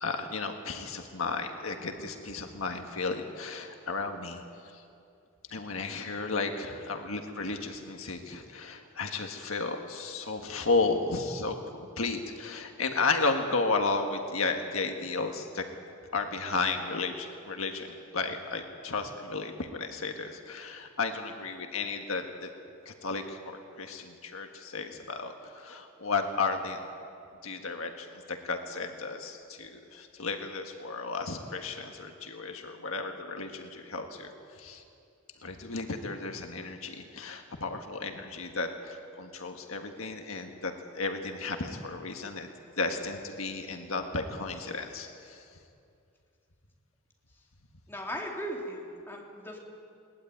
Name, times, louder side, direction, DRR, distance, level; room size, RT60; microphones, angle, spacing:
voice 1, 0.0-4.4 4.7-4.8 5.5-15.6 16.1-22.5 22.8-26.9 27.4-34.8 35.4-42.5 42.8-45.4, left 3 dB, 75° left, 4 dB, 1.6 m, -33 dB
voice 2, 47.9-49.6, equal, 10° left, -2 dB, 3.4 m, -37 dB
22.0 x 19.5 x 9.3 m, 2.5 s
head